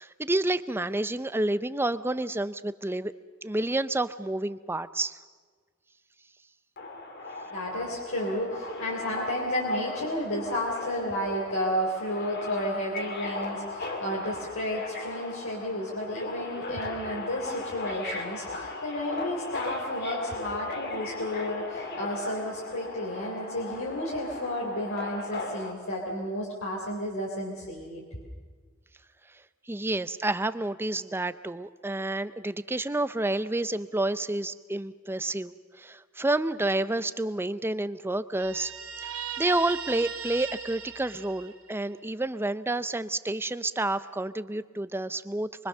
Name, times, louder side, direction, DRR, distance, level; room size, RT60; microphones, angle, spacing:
voice 1, 0.0-3.1 3.4-5.2 29.7-38.7 39.4-45.7, right 2 dB, 10° right, 14 dB, 0.6 m, -29 dB
Subway metro underground, 6.8-25.7, left 2 dB, 50° left, 2.6 m, -37 dB
voice 2, 7.5-28.0, left 1 dB, 70° left, -3 dB, 3.6 m, -32 dB
Guitar, 38.4-42.0, right 8 dB, 90° right, 2.0 m, -38 dB
24.5 x 23.5 x 6.7 m, 1.5 s
head